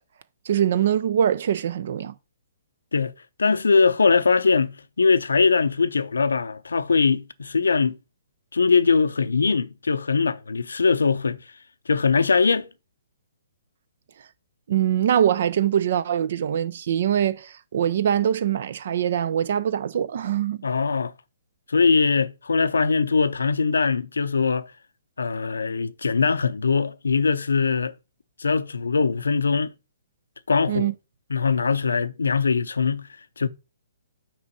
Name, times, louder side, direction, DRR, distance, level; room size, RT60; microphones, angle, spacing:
voice 1, 0.5-2.1 14.7-20.6 30.7-30.9, right 9 dB, 55° right, 0.6 m, -23 dB
voice 2, 3.4-8.0 8.5-11.4 11.9-12.7 20.6-21.1 21.7-24.7 25.2-27.9 28.4-29.7 30.5-30.9 31.3-33.1 33.4-33.5, left 4 dB, 75° left, 0.5 m, -21 dB
6.0 x 4.5 x 4.7 m
figure-of-eight pair, 130°, 0 cm